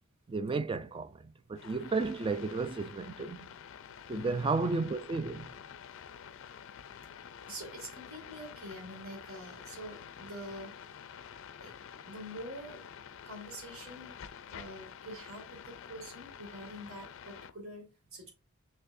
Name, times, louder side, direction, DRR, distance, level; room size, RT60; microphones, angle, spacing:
voice 1, 0.3-3.5 4.1-5.5, right 3 dB, 25° right, 0.3 m, -33 dB
sound 1, 1.6-17.5, left 8 dB, 65° left, 0.4 m, -49 dB
voice 2, 7.4-10.7 11.6-11.7 12.0-12.8 13.2-14.2 14.5-18.3, equal, 85° right, 2.0 m, -46 dB
5.7 x 3.2 x 2.6 m
head